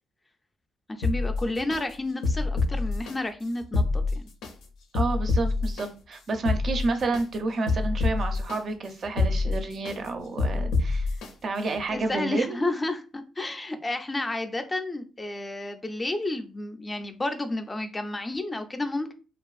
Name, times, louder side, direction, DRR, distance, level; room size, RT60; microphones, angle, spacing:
voice 1, 0.9-4.3 11.9-19.1, left 2 dB, 20° left, 7 dB, 0.3 m, -31 dB
sound 1, 1.0-1.8 2.2-3.1 3.6-4.5 5.0-5.9 6.3-7.2 7.7-8.6 9.0-10.0 10.4-11.3 11.8-11.9, left 3 dB, 80° left, 0.4 m, -26 dB
voice 2, 4.9-11.1 11.4-12.6, right 3 dB, 50° right, 7 dB, 0.4 m, -30 dB
2.5 x 2.3 x 2.3 m, 0.33 s
cardioid pair, 90°, 0 cm